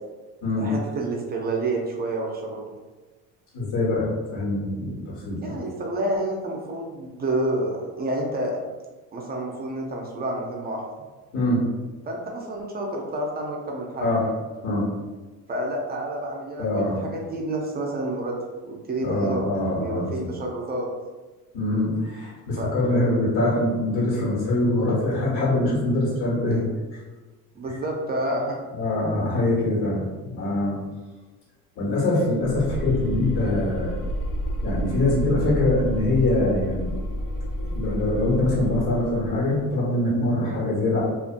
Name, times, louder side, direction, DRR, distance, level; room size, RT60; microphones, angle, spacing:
voice 1, 0.6-2.7 5.4-8.6 9.1-10.8 12.0-14.1 15.5-18.4 18.6-19.4 19.7-20.9 22.6-22.8 27.6-28.6, right 1 dB, 30° right, -1 dB, 0.5 m, -29 dB
voice 2, 3.5-5.5 11.3-11.6 14.0-14.3 14.6-14.8 16.6-17.0 19.0-20.3 21.5-26.6 26.9-27.0 28.7-30.8 31.8-33.9 34.6-36.9 37.6-41.0, left 2 dB, 65° left, -5 dB, 1.5 m, -24 dB
sound 1, 32.4-39.6, equal, 85° left, 0.5 m, -30 dB
2.5 x 2.4 x 2.5 m, 1.2 s
cardioid pair, 110°, 34 cm